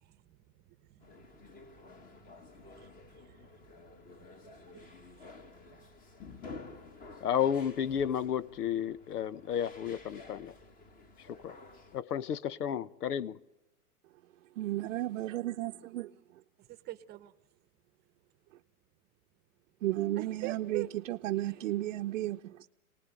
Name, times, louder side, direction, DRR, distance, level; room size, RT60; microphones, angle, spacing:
voice 1, 0.0-5.9 16.6-17.3 20.2-21.7, right 16 dB, 20° right, 1.0 m, -48 dB
sound 1, 1.0-12.0, left 3 dB, 20° left, 1.5 m, -52 dB
voice 2, 7.2-10.6 11.2-11.6 11.9-13.4, left 9 dB, 85° left, 1.0 m, -32 dB
voice 3, 14.5-16.4 19.8-22.7, right 15 dB, 55° right, 0.8 m, -34 dB
28.0 x 19.0 x 9.0 m
hypercardioid pair, 145°, 45 cm